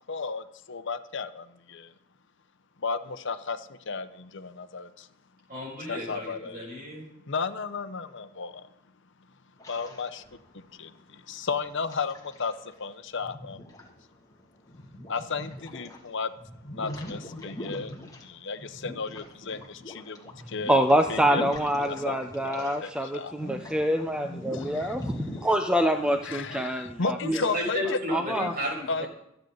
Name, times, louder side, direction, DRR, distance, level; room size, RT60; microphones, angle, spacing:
voice 1, 0.1-1.9 2.8-5.1 5.9-6.8 7.3-8.7 9.7-10.2 10.5-12.5 12.8-13.6 15.1-16.3 16.7-17.9 18.2-20.8 21.1-21.4 22.0-23.5 24.5-24.9 26.2-27.8 28.4-28.5 28.9-29.1, left 4 dB, 65° left, 10 dB, 0.9 m, -34 dB
voice 2, 5.5-7.1 27.2-29.1, equal, 50° right, -1 dB, 6.2 m, -32 dB
sound 1, 9.6-10.7 11.4-12.8 13.1-16.0 16.3-23.0 23.3-26.6, left 1 dB, 20° left, 2.3 m, -42 dB
voice 3, 20.7-27.4 28.1-28.5, equal, 5° right, 5 dB, 0.7 m, -26 dB
26.5 x 9.1 x 4.0 m, 0.83 s
head